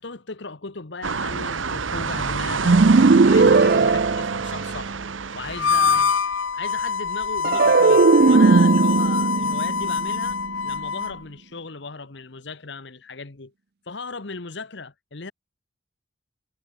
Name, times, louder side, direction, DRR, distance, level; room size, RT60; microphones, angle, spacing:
voice 1, 0.0-5.0 5.3-10.4 10.6-13.5 13.9-15.3, left 4 dB, 65° left, 1.2 m, -37 dB
sound 1, 1.0-6.0, right 5 dB, 85° right, 1.2 m, -28 dB
sound 2, 2.6-5.0 7.4-10.8, right 4 dB, 50° right, 0.5 m, -17 dB
Harmonica, 5.5-11.2, left 5 dB, 90° left, 1.3 m, -24 dB
head